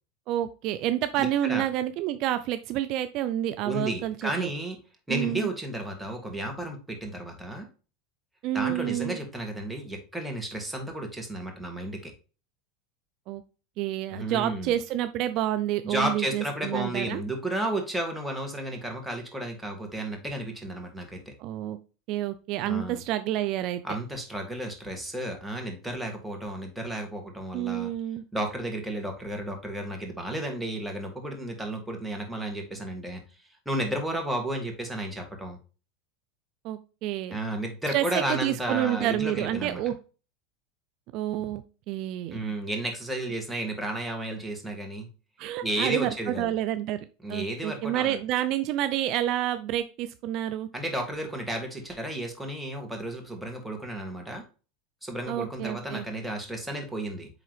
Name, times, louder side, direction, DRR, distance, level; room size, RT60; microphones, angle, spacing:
voice 1, 0.3-4.5 5.1-5.5 8.4-9.2 13.3-13.4 13.8-17.2 21.4-21.8 22.1-23.8 27.5-28.2 36.6-37.4 37.9-39.9 41.1-42.4 45.4-47.0 47.3-50.7 55.3-56.1, right 12 dB, 55° right, 11 dB, 0.5 m, -29 dB
voice 2, 1.2-1.6 3.6-4.8 5.1-7.7 8.5-12.1 14.1-14.7 15.8-21.3 22.6-23.0 23.8-27.9 28.3-33.2 33.7-35.6 37.3-39.8 42.3-45.1 45.6-46.5 47.2-48.2 50.7-54.4 55.0-57.3, right 1 dB, 5° right, 2 dB, 2.2 m, -33 dB
8.8 x 3.7 x 3.3 m, 0.34 s
hypercardioid pair, 95°, 0 cm